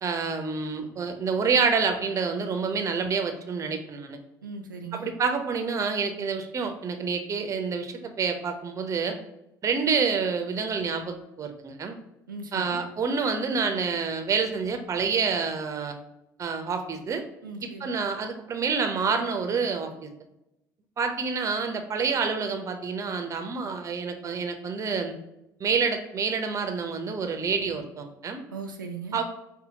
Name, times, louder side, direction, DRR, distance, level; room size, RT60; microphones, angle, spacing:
voice 1, 0.0-4.2 4.9-9.2 9.6-11.9 12.5-16.0 16.4-17.2 17.6-20.1 21.0-25.2 25.6-28.4 29.1-29.2, right 5 dB, 30° right, 6 dB, 0.6 m, -28 dB
voice 2, 4.4-5.1 12.3-12.8 17.4-17.9 28.5-29.2, right 4 dB, 80° right, 3 dB, 0.4 m, -38 dB
5.5 x 2.1 x 3.9 m, 0.86 s
figure-of-eight pair, 60°, 11 cm